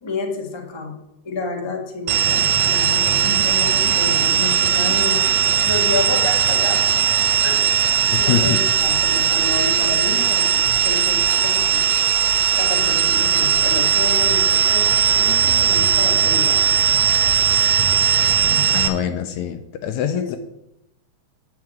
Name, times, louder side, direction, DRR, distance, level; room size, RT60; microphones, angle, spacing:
voice 1, 0.0-0.9 1.2-5.3 5.6-6.9 7.4-7.8 8.2-11.8 12.5-16.6 20.1-20.4, left 3 dB, 40° left, 1 dB, 0.3 m, -29 dB
sound 1, 2.1-18.9, right 9 dB, 70° right, 1.8 m, -18 dB
voice 2, 8.1-8.6 18.7-20.4, left 10 dB, 80° left, 8 dB, 1.8 m, -24 dB
10.5 x 4.7 x 7.8 m, 0.86 s
omnidirectional pair, 3.7 m